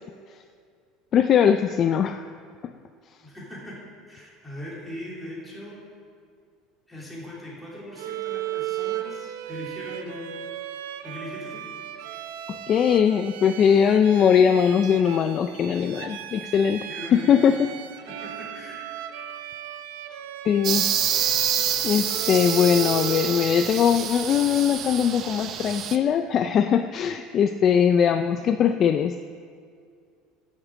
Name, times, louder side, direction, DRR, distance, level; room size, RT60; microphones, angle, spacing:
voice 1, 1.1-2.2 12.5-17.7 20.4-20.9 21.8-29.2, left 8 dB, 30° left, 8 dB, 0.3 m, -21 dB
voice 2, 3.2-5.8 6.9-10.4 11.0-11.6 16.9-17.6 18.0-18.8 28.1-28.4, left 1 dB, 5° left, -7 dB, 3.1 m, -39 dB
Bowed string instrument, 8.0-23.7, right 11 dB, 85° right, 0.7 m, -36 dB
sound 1, 20.6-26.0, right 9 dB, 35° right, 0.6 m, -27 dB
11.0 x 8.1 x 7.4 m, 2.2 s
cardioid pair, 165°, 0 cm